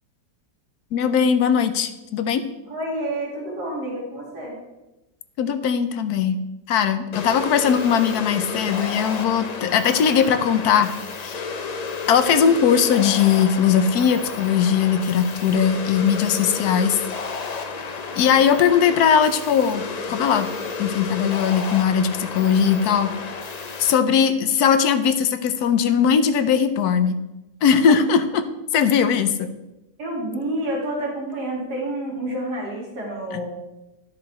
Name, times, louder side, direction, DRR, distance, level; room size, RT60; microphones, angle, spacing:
voice 1, 0.9-2.5 5.4-6.4 6.7-10.9 11.2-11.5 12.1-17.0 18.2-20.5 20.8-23.1 23.8-27.2 27.6-28.5 28.7-29.5 33.3-33.4, left 7 dB, 75° left, 11 dB, 1.2 m, -19 dB
voice 2, 2.7-4.6 30.0-33.5, right 1 dB, 85° right, -3 dB, 2.8 m, -29 dB
sound 1, 7.1-23.9, left 4 dB, 60° left, 0.4 m, -32 dB
12.0 x 6.6 x 4.3 m, 1.0 s
omnidirectional pair, 1.7 m